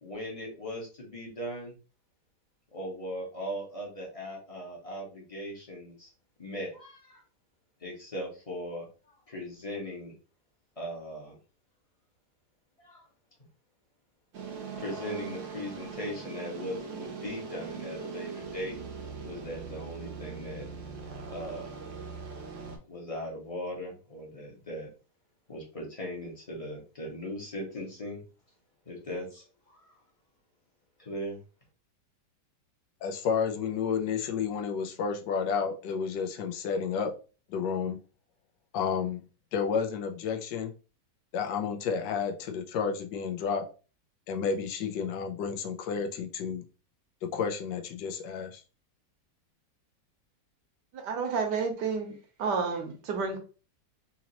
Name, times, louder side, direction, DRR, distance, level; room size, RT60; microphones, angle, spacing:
voice 1, 0.0-1.7 2.7-6.1 6.4-7.2 7.8-8.9 9.3-10.1 10.8-11.4 12.8-13.1 14.8-18.8 19.2-20.7 21.1-21.7 22.9-24.9 25.5-28.2 28.8-30.0 31.0-31.4, equal, 25° left, 1.1 m, -39 dB
sound 1, 14.3-22.8, right 5 dB, 55° right, 0.9 m, -41 dB
voice 2, 33.0-37.1 37.5-38.0 38.7-39.2 39.5-40.7 41.3-43.6 44.3-46.6 47.2-48.6, left 6 dB, 85° left, 1.3 m, -31 dB
voice 3, 50.9-52.1 52.4-53.4, right 5 dB, 75° right, 1.4 m, -30 dB
4.0 x 2.8 x 2.9 m
omnidirectional pair, 1.9 m